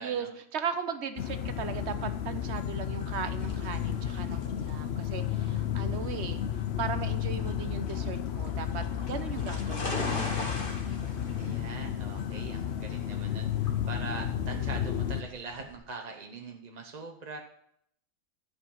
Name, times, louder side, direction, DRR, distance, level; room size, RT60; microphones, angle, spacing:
voice 1, 0.0-6.4 6.8-10.3 11.4-11.9, right 6 dB, 60° right, 10 dB, 1.1 m, -37 dB
sound 1, 1.2-15.2, left 9 dB, 60° left, 0.9 m, -32 dB
sound 2, 3.4-15.8, left 2 dB, 40° left, 1.7 m, -41 dB
voice 2, 11.4-17.4, right 4 dB, 35° right, 2 dB, 0.8 m, -42 dB
11.5 x 5.3 x 7.1 m, 0.73 s
omnidirectional pair, 1.4 m